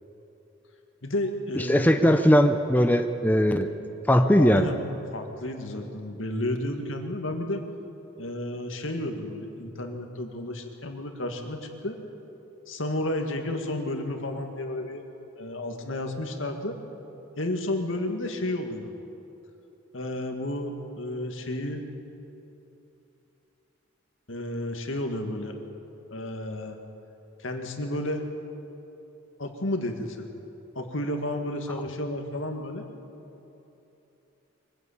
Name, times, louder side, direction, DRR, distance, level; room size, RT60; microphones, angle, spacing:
voice 1, 1.0-2.1 4.4-4.8 5.1-7.6 8.2-12.0 12.7-15.0 15.4-16.8 17.4-18.9 19.9-21.8 24.3-25.5 26.1-26.8 27.4-28.3 29.4-30.3 30.8-32.8, left 1 dB, 75° left, 4 dB, 2.2 m, -32 dB
voice 2, 1.6-3.7 4.1-4.7, equal, 10° left, 7 dB, 0.6 m, -20 dB
23.5 x 15.5 x 8.7 m, 3.0 s
head